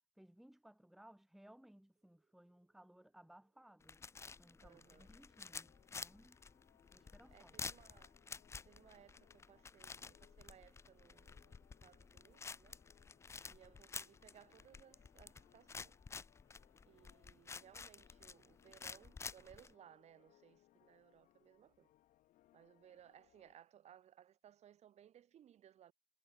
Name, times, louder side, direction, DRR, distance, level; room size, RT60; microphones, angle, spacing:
voice 1, 0.2-4.0 4.4-6.4 6.9-7.7, right 1 dB, ahead, 1.7 m, -63 dB
sound 1, 1.9-14.7, right 4 dB, 20° right, 5.2 m, -84 dB
sound 2, 3.8-19.7, left 5 dB, 20° left, 0.5 m, -52 dB
voice 2, 4.6-5.1 7.3-8.1 8.7-12.8 13.5-16.0 16.9-21.9 22.5-25.9, right 10 dB, 45° right, 3.1 m, -63 dB
sound 3, 4.8-23.5, left 14 dB, 60° left, 3.2 m, -73 dB
cardioid pair, 115°, 15 cm